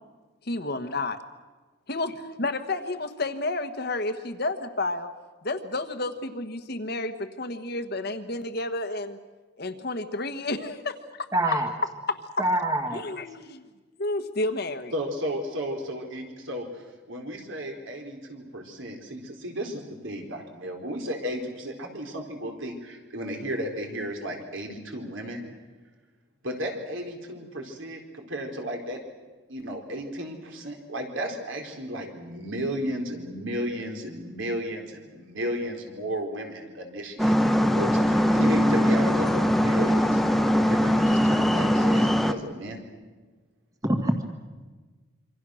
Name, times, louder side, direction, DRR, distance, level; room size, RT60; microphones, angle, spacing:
voice 1, 0.5-1.2 1.9-5.1 5.4-9.2 9.6-11.3 12.9-13.6 14.0-14.9, left 2 dB, 50° left, 8 dB, 1.4 m, -31 dB
voice 2, 11.3-11.7 12.4-13.0 43.8-44.3, right 1 dB, 15° right, 4 dB, 1.8 m, -25 dB
voice 3, 14.9-25.4 26.4-29.0 29.5-42.8, equal, 70° right, 2 dB, 4.2 m, -34 dB
sound 1, 37.2-42.3, equal, ahead, 0.8 m, -21 dB
27.0 x 25.0 x 6.5 m, 1.3 s
head